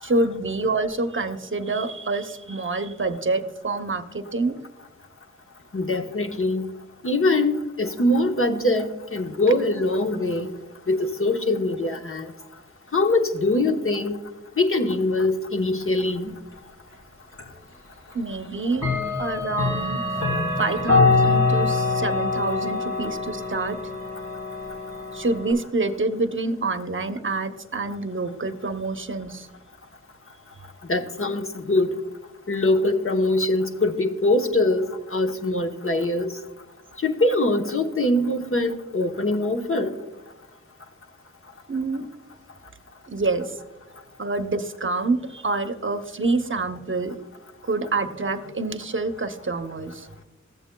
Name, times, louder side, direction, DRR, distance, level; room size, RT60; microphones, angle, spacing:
voice 1, 0.0-4.6 18.1-18.9 19.2-20.0 20.6-23.8 25.1-29.5 41.7-42.1 43.1-43.6 44.2-47.1 47.7-50.1, right 3 dB, 45° right, 7 dB, 0.7 m, -27 dB
voice 2, 5.7-6.7 7.0-10.5 10.9-12.3 12.9-14.2 14.6-16.3 30.9-31.9 32.5-36.3 37.0-39.9, left 2 dB, 45° left, 4 dB, 0.9 m, -23 dB
Clock, 17.4-17.5 18.7-25.5, left 3 dB, 80° left, 3.0 m, -24 dB
14.0 x 8.2 x 2.2 m, 1.1 s
wide cardioid pair, 55°, 29 cm